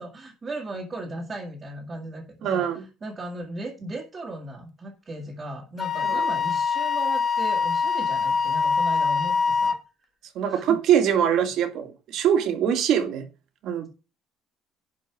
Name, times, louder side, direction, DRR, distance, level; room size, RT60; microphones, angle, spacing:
voice 1, 0.0-9.8 10.4-10.8, right 1 dB, 25° right, 1.9 m, -37 dB
voice 2, 2.4-2.9 6.0-6.3 10.3-13.3 13.6-13.9, right 9 dB, 65° right, 2.2 m, -23 dB
Wind instrument woodwind instrument, 5.8-9.8, left 5 dB, 35° left, 1.2 m, -24 dB
11.5 x 4.7 x 6.0 m
cardioid pair, 165°, 0 cm